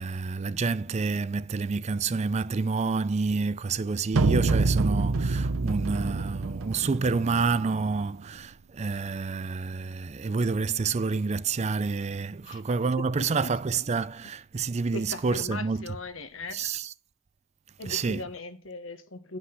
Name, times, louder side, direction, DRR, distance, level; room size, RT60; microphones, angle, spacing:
voice 1, 0.0-16.0 16.5-16.9 17.9-18.2, right 4 dB, 30° right, 0.4 m, -28 dB
sound 1, 4.1-8.2, right 3 dB, 85° right, 0.7 m, -27 dB
voice 2, 13.0-13.5 14.9-16.6 17.8-19.4, left 2 dB, 70° left, 1.3 m, -39 dB
9.7 x 6.0 x 5.8 m
head